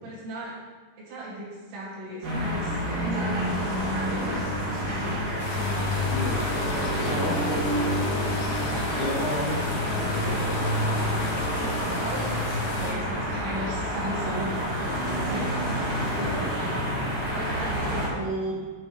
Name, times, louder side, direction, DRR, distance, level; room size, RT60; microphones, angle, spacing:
voice 1, 0.0-0.5 1.0-4.6 4.9-6.4 6.6-7.7 8.3-8.5 11.5-15.6 16.2-16.8 17.3-18.6, right 1 dB, 75° right, -7 dB, 4.5 m, -37 dB
sound 1, 2.2-18.1, equal, 40° right, 2.2 m, -28 dB
sound 2, 5.4-12.9, left 3 dB, 70° left, 2.5 m, -37 dB
voice 2, 6.0-6.4 7.0-7.6 8.6-10.4 16.0-16.5, left 1 dB, 85° left, -5 dB, 1.7 m, -32 dB
sound 3, 9.9-17.6, left 2 dB, 30° left, 1.7 m, -44 dB
9.0 x 7.1 x 3.2 m, 1.4 s
omnidirectional pair, 5.2 m